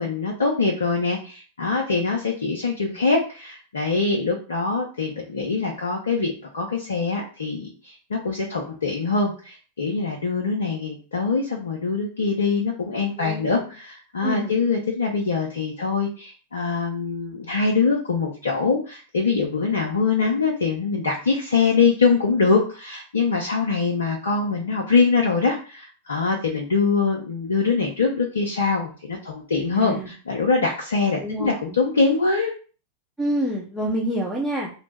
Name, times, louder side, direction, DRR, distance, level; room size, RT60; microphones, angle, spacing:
voice 1, 0.0-32.5, left 4 dB, 70° left, 0 dB, 0.5 m, -23 dB
voice 2, 13.2-13.6 14.2-14.5 29.7-30.1 31.2-31.8 33.2-34.7, right 1 dB, 5° right, -5 dB, 0.6 m, -27 dB
2.9 x 2.0 x 3.3 m, 0.38 s
figure-of-eight pair, 90°, 0 cm